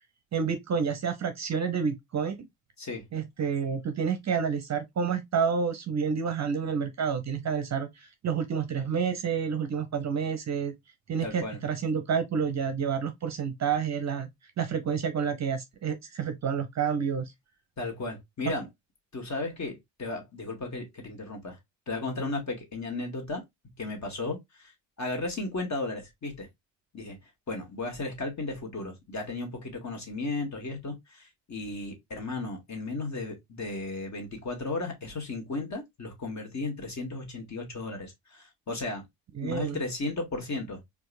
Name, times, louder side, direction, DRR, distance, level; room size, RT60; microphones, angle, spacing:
voice 1, 0.3-2.4 3.1-10.7 11.1-14.3 14.6-17.3 39.3-39.8, right 6 dB, 35° right, 0.8 m, -29 dB
voice 2, 11.2-11.6 17.8-18.7 19.1-21.6 21.9-23.4 23.8-24.7 25.0-26.5 26.9-27.2 27.5-39.0 39.4-40.8, left 2 dB, 35° left, 1.8 m, -35 dB
4.5 x 2.5 x 2.6 m
hypercardioid pair, 50°, 48 cm